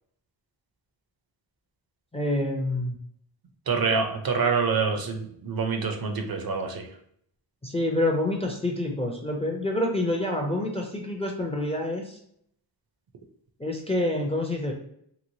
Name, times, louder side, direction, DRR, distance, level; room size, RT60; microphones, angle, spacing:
voice 1, 2.1-3.0 7.6-12.2 13.6-14.7, left 1 dB, 15° left, 1 dB, 0.3 m, -27 dB
voice 2, 3.7-6.9, right 5 dB, 50° right, 5 dB, 0.5 m, -26 dB
3.1 x 3.0 x 2.6 m, 0.68 s
wide cardioid pair, 170°, 46 cm